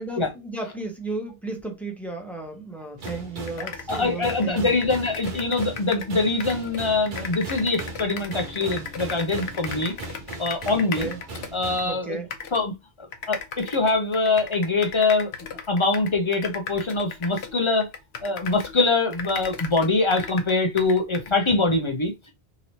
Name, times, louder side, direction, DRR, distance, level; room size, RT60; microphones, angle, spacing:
voice 1, 0.0-4.9 10.7-11.2 11.8-12.3, right 3 dB, ahead, 0.7 m, -34 dB
sound 1, 3.0-11.9, right 3 dB, 55° right, 0.8 m, -38 dB
sound 2, 3.1-3.2 3.4-6.1 6.4-11.9 12.3-12.6 13.1-18.8 19.1-21.3, left 6 dB, 90° left, 0.9 m, -37 dB
voice 2, 3.6-9.9 10.4-11.1 11.5-12.2 12.5-12.7 13.0-15.3 15.7-17.9 18.2-22.3, left 3 dB, 40° left, 0.4 m, -23 dB
3.0 x 2.8 x 2.7 m
omnidirectional pair, 1.0 m